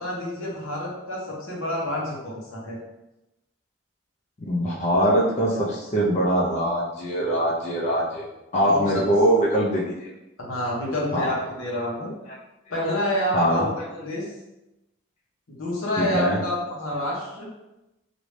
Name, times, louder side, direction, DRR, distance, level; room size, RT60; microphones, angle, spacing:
voice 1, 0.0-2.8 8.6-9.1 10.5-12.1 12.7-13.6 13.9-14.3 15.5-17.5, left 1 dB, 80° left, -4 dB, 1.0 m, -28 dB
voice 2, 4.5-8.2 8.5-10.1 11.1-11.3 12.3-12.4 13.3-13.9 16.0-16.4, equal, 35° left, -5 dB, 0.5 m, -22 dB
3.1 x 2.6 x 3.1 m, 0.95 s
head